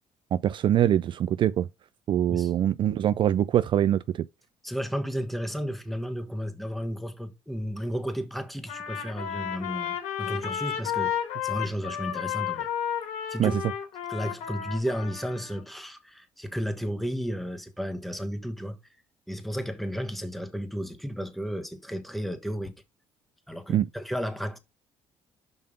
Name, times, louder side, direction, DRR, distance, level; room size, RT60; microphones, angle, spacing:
voice 1, 0.3-1.7 2.1-4.3 13.4-13.5 23.7-23.9, right 11 dB, 50° right, 0.3 m, -23 dB
voice 2, 4.6-12.7 13.3-13.6 14.1-18.8 19.3-22.7 23.5-24.6, equal, ahead, 1.4 m, -33 dB
Trumpet, 8.7-15.6, left 9 dB, 85° left, 3.4 m, -32 dB
5.7 x 5.3 x 5.3 m
cardioid pair, 115°, 11 cm